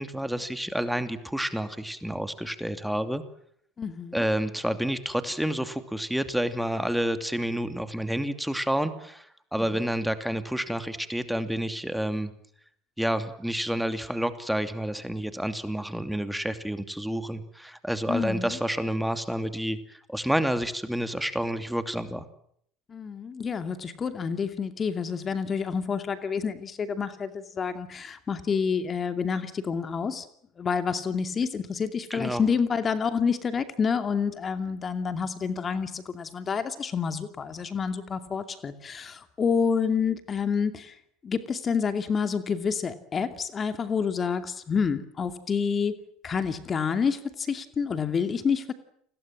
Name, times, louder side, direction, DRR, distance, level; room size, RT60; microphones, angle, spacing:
voice 1, 0.0-3.2 4.1-12.3 13.0-22.2 32.1-32.4, equal, ahead, 9 dB, 2.7 m, -29 dB
voice 2, 3.8-4.2 9.6-9.9 18.1-18.6 22.9-30.3 30.6-40.9 41.2-45.9 46.2-48.7, left 6 dB, 30° left, 9 dB, 2.5 m, -28 dB
30.0 x 22.0 x 7.6 m, 0.67 s
hypercardioid pair, 75°, 0 cm